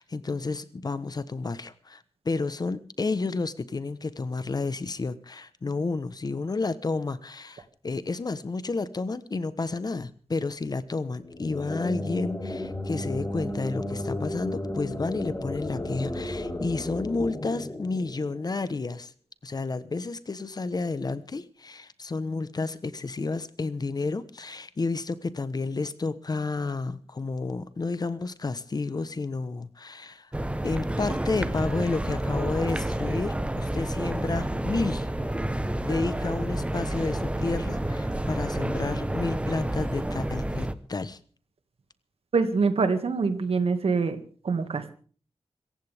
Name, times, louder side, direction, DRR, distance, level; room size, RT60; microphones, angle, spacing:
voice 1, 0.0-19.1 19.4-30.3 30.6-35.1 35.8-41.2, left 3 dB, 40° left, 14 dB, 1.2 m, -31 dB
sound 1, 11.2-18.8, left 1 dB, 20° left, 4.4 m, -34 dB
sound 2, 30.3-40.7, right 1 dB, 10° right, 1.1 m, -29 dB
voice 2, 42.3-44.2 44.4-44.9, right 4 dB, 70° right, 8 dB, 2.2 m, -25 dB
26.0 x 15.0 x 3.6 m, 0.43 s
wide cardioid pair, 140°, 10 cm